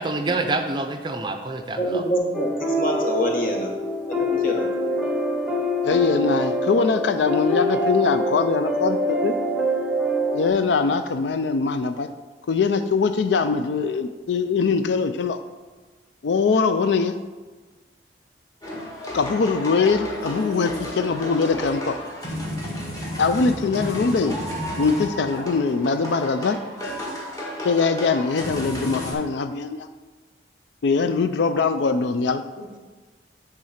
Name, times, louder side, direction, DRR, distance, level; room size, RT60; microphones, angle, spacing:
voice 1, 0.0-2.0, right 2 dB, 25° right, 6 dB, 0.5 m, -27 dB
voice 2, 1.8-2.5 2.8-3.7 4.1-4.7 32.6-32.8, equal, 50° left, 1 dB, 1.1 m, -25 dB
sound 1, 2.3-10.5, equal, 5° right, 0.8 m, -25 dB
voice 3, 5.8-9.3 10.3-12.1 12.5-15.4 16.2-17.1 19.1-22.0 23.2-24.4 24.8-26.6 27.6-29.9 30.8-32.4, left 4 dB, 80° left, 9 dB, 0.4 m, -22 dB
sound 2, 18.6-29.1, equal, 20° left, 1.5 m, -32 dB
9.2 x 3.7 x 5.8 m, 1.3 s
head